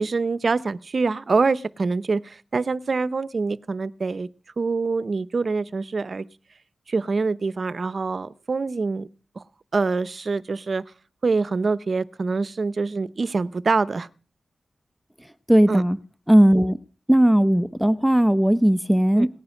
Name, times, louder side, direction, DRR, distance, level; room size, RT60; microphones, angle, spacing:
voice 1, 0.0-4.3 4.6-6.2 6.9-9.1 9.4-9.5 9.7-10.8 11.2-14.1 15.7-15.8 19.2-19.3, right 4 dB, 50° right, 0.7 m, -25 dB
voice 2, 15.5-16.0 16.3-16.8 17.1-19.3, right 1 dB, ahead, 0.7 m, -17 dB
18.0 x 9.5 x 6.4 m
wide cardioid pair, 100°, 0 cm